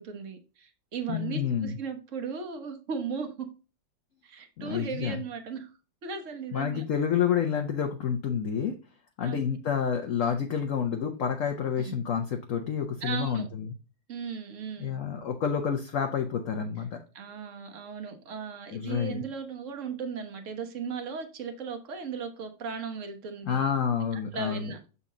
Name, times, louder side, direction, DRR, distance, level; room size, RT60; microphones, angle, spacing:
voice 1, 0.0-3.5 4.2-5.7 6.0-6.8 9.2-9.4 11.8-12.0 13.0-13.5 14.1-15.0 17.1-23.7 24.3-24.8, right 5 dB, 45° right, 6 dB, 1.3 m, -36 dB
voice 2, 1.1-1.8 4.6-5.2 6.5-8.8 9.2-13.7 14.8-17.0 18.7-19.2 23.4-24.7, left 7 dB, 60° left, 5 dB, 0.8 m, -29 dB
7.1 x 4.2 x 3.7 m, 0.34 s
omnidirectional pair, 2.1 m